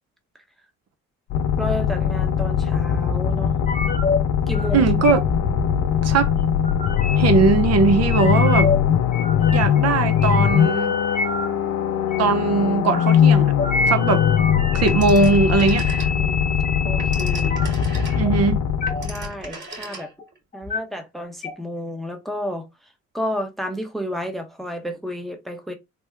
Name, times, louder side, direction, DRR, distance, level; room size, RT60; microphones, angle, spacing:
sound 1, 1.3-19.4, left 8 dB, 70° left, 0.5 m, -21 dB
voice 1, 1.6-3.5 4.5-4.9 16.1-16.4 16.8-17.6 19.0-20.1 20.5-22.7 23.1-25.7, equal, ahead, 0.7 m, -31 dB
sound 2, 3.7-4.2 4.5-4.8 5.0-5.4 6.3-7.2 8.1-8.8 9.1-9.8 10.1-11.5 12.1-12.3 12.8-13.1 13.6-17.7 18.1-18.3 18.8-19.1 19.5-20.2 20.5-20.8 21.4-21.5, left 3 dB, 25° left, 0.9 m, -27 dB
voice 2, 4.7-5.2 6.0-6.3 7.2-8.7 9.5-11.0 12.2-13.5 13.9-14.2 14.7-15.8 18.2-18.6, right 4 dB, 55° right, 0.7 m, -19 dB
Telephone, 14.9-16.4 16.8-20.4, right 3 dB, 35° right, 2.1 m, -38 dB
3.4 x 2.1 x 3.2 m
cardioid pair, 90°, 30 cm